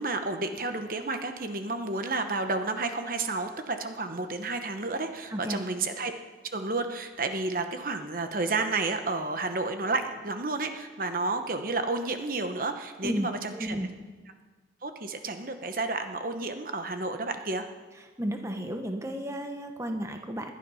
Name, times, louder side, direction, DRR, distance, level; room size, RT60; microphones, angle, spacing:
voice 1, 0.0-6.1 6.5-13.8 14.8-17.7, right 3 dB, 50° right, 7 dB, 1.0 m, -31 dB
voice 2, 5.3-5.6 13.0-13.3 13.5-13.9 18.2-20.5, equal, 15° right, 5 dB, 1.1 m, -32 dB
20.0 x 11.0 x 5.6 m, 1.3 s
head